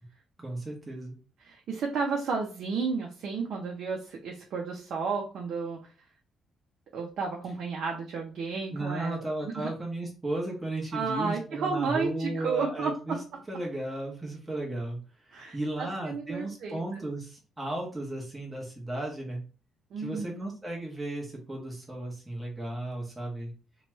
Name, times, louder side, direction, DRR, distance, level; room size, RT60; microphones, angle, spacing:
voice 1, 0.4-1.2 8.7-13.2 13.5-15.0 15.2-19.4 20.0-23.5, right 1 dB, 10° right, -2 dB, 1.0 m, -35 dB
voice 2, 1.4-5.9 6.9-9.2 9.4-9.7 10.9-13.2 15.3-17.0 19.9-20.5, right 5 dB, 60° right, 0 dB, 0.5 m, -32 dB
2.9 x 2.2 x 3.0 m, 0.36 s
cardioid pair, 145°, 0 cm